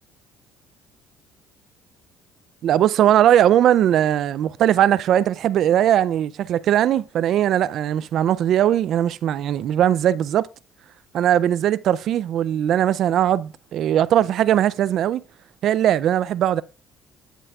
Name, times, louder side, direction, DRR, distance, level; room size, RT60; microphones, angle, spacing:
voice 1, 2.6-10.5 11.1-15.2 15.6-16.6, right 11 dB, 60° right, 0.3 m, -19 dB
9.4 x 7.5 x 2.3 m
cardioid pair, 105°, 0 cm